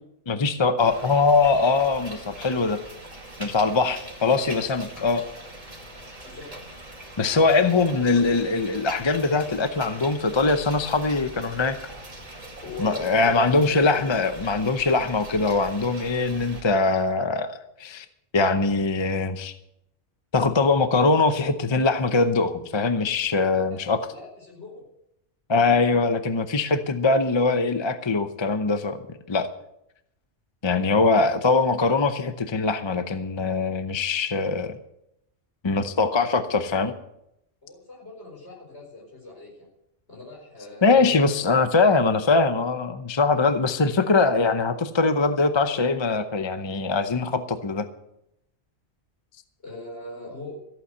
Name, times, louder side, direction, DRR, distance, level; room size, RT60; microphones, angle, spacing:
voice 1, 0.3-2.8 3.4-5.2 7.2-11.8 12.8-18.1 18.3-19.5 20.3-24.0 25.5-29.0 29.3-29.5 30.6-34.8 35.6-36.9 40.8-47.9, left 3 dB, 30° left, 10 dB, 0.7 m, -22 dB
sound 1, 0.8-16.6, right 1 dB, 30° right, 2.2 m, -42 dB
voice 2, 6.2-6.5 7.6-8.2 12.6-14.1 23.7-23.8 24.1-24.8 37.6-39.7 40.1-41.2 49.6-50.6, left 2 dB, 65° left, -2 dB, 4.9 m, -40 dB
14.5 x 8.5 x 7.9 m, 0.81 s
omnidirectional pair, 1.2 m